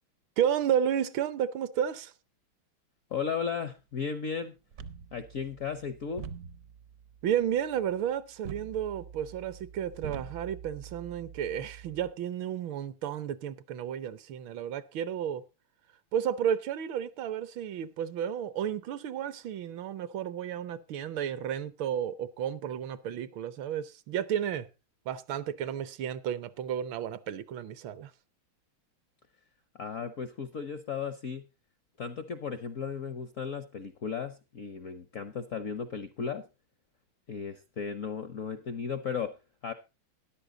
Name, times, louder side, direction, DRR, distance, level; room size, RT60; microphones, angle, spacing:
voice 1, 0.4-2.1 7.2-15.4 16.1-24.7 25.1-28.1, right 9 dB, 75° right, 1.5 m, -32 dB
voice 2, 3.1-4.5 5.1-6.2 29.8-31.4 32.0-36.5 37.3-39.3 39.6-39.7, left 6 dB, 65° left, 0.8 m, -35 dB
sound 1, 4.7-12.1, right 7 dB, 60° right, 0.9 m, -46 dB
13.5 x 10.5 x 3.8 m
omnidirectional pair, 2.2 m